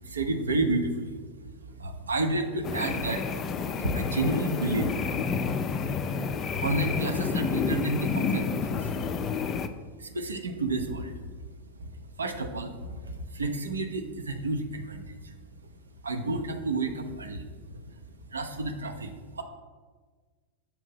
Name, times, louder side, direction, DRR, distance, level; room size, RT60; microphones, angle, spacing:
voice 1, 0.0-1.5 1.8-3.2 3.7-5.3 5.6-5.8 6.6-8.9 9.5-9.6 10.0-11.1 11.8-15.3 16.0-17.8 18.3-19.4, right 2 dB, 75° right, 6 dB, 0.5 m, -31 dB
sound 1, 2.6-9.7, left 5 dB, 30° left, 0.3 m, -29 dB
6.9 x 2.7 x 5.4 m, 1.4 s
figure-of-eight pair, 90°, 0 cm